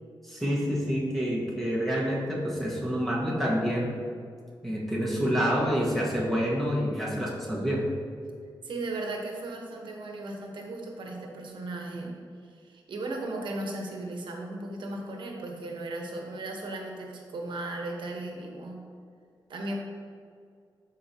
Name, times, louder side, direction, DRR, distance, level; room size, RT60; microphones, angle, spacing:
voice 1, 0.2-4.0 4.6-7.9, equal, ahead, -5 dB, 1.2 m, -28 dB
voice 2, 8.6-12.1 12.5-18.8 19.5-19.7, right 2 dB, 70° right, 1 dB, 1.0 m, -36 dB
12.0 x 4.5 x 2.8 m, 2.2 s
wide cardioid pair, 160°, 8 cm